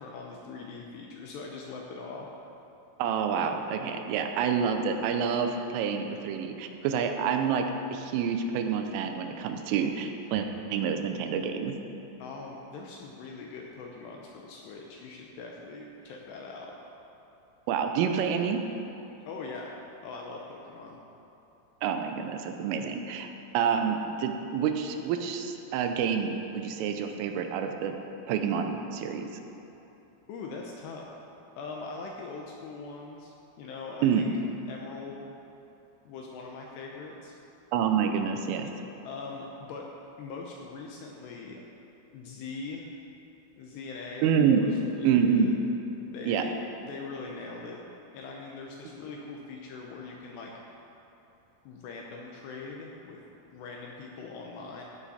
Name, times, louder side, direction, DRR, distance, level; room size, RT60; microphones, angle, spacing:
voice 1, 0.0-2.3 12.2-16.7 19.3-19.7 20.0-21.0 30.3-31.1 31.6-34.3 34.7-35.3 36.1-37.4 39.0-39.9 40.2-41.6 42.1-42.9 43.6-45.5 46.1-47.8 48.1-50.5 51.7-53.2 53.5-54.8, left 4 dB, 75° left, -1 dB, 2.6 m, -41 dB
voice 2, 3.0-7.6 7.9-11.8 17.7-18.6 21.8-23.3 23.5-28.0 28.3-29.3 34.0-34.3 37.7-38.7 44.2-44.6 45.0-45.5 46.2-46.4, right 7 dB, 85° right, 5 dB, 3.3 m, -27 dB
15.5 x 9.7 x 4.3 m, 2.9 s
omnidirectional pair, 5.7 m